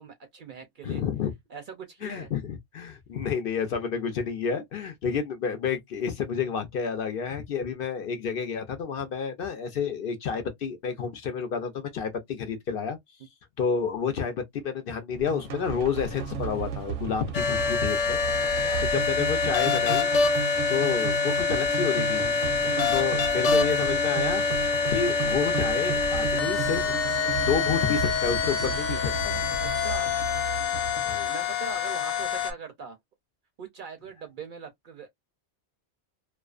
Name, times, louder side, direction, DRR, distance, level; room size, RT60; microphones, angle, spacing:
voice 1, 0.0-1.0 1.5-2.3 18.5-18.9 22.7-22.9 29.6-30.1 31.3-33.0 33.6-35.1, right 5 dB, 60° right, 0.6 m, -41 dB
voice 2, 0.8-1.3 2.0-13.0 13.6-18.6 18.9-20.1 20.7-22.3 22.9-24.4 24.9-26.9 27.4-29.4 31.1-31.3, left 6 dB, 60° left, 0.7 m, -30 dB
sound 1, 15.1-31.3, right 7 dB, 85° right, 0.9 m, -34 dB
sound 2, 17.3-32.5, left 5 dB, 85° left, 0.9 m, -26 dB
2.4 x 2.3 x 2.3 m
omnidirectional pair, 1.2 m